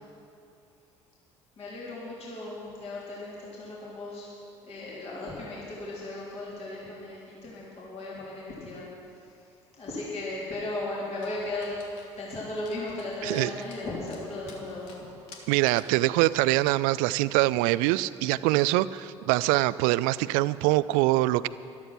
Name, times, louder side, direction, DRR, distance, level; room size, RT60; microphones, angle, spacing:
voice 1, 1.6-4.3 4.6-11.8 12.2-15.1, left 2 dB, 45° left, -7 dB, 3.8 m, -36 dB
Dog, 11.2-16.0, left 4 dB, 70° left, 1.6 m, -53 dB
voice 2, 15.5-21.5, right 18 dB, 60° right, 18 dB, 0.4 m, -24 dB
13.0 x 12.5 x 5.9 m, 2.7 s
figure-of-eight pair, 60°, 15 cm